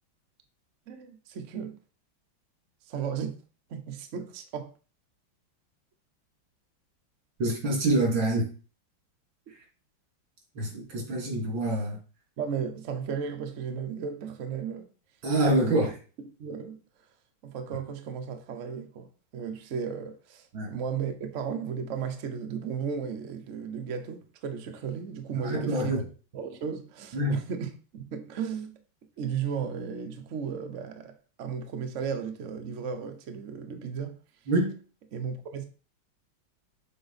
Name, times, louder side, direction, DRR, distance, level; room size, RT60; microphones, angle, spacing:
voice 1, 0.9-1.8 2.9-3.4 3.7-4.7 12.4-14.9 15.5-15.8 16.4-16.8 17.4-26.0 26.3-28.8 29.2-34.2 35.1-35.6, right 7 dB, 55° right, 0.9 m, -35 dB
voice 2, 7.4-8.5 9.5-9.6 10.5-12.0 15.2-16.0 20.5-20.7 25.3-26.0 27.1-27.4 34.5-34.8, right 1 dB, 80° right, 3.1 m, -26 dB
7.8 x 3.7 x 4.1 m
omnidirectional pair, 2.1 m